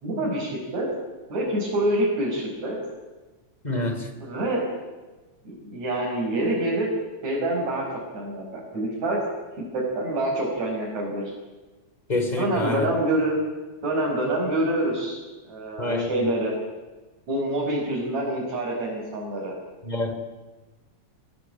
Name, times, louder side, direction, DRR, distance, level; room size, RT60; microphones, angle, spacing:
voice 1, 0.0-0.9 1.3-2.8 4.2-4.7 5.4-7.0 7.2-9.2 9.7-11.2 12.4-13.4 13.8-15.2 15.4-16.5 17.3-19.5, right 1 dB, 70° right, -4 dB, 6.7 m, -26 dB
voice 2, 3.6-4.1 12.1-12.9 15.8-16.2 19.8-20.2, left 2 dB, 15° left, 7 dB, 3.1 m, -27 dB
25.5 x 20.0 x 9.2 m, 1.2 s
omnidirectional pair, 3.3 m